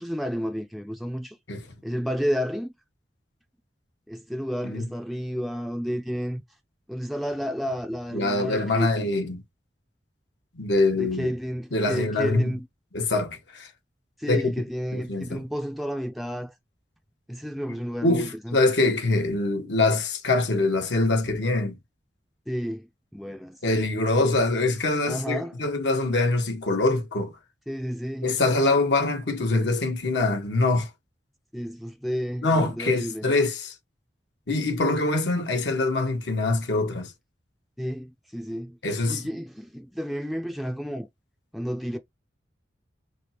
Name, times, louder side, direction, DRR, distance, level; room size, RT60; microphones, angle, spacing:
voice 1, 0.0-1.4 1.8-2.7 4.1-6.4 6.9-9.2 11.0-12.7 14.2-16.5 17.3-18.6 22.5-22.9 23.1-23.6 25.0-25.5 27.7-28.3 31.5-33.3 37.8-38.8 39.1-41.1 41.5-42.0, equal, ahead, 0.4 m, -31 dB
voice 2, 8.1-9.4 10.5-11.3 11.7-12.5 12.9-13.7 14.3-14.5 14.9-15.4 18.0-21.8 23.6-27.3 28.2-30.9 32.4-33.7 34.5-37.1 38.8-39.2, left 2 dB, 80° left, 1.1 m, -24 dB
4.0 x 3.4 x 2.9 m
head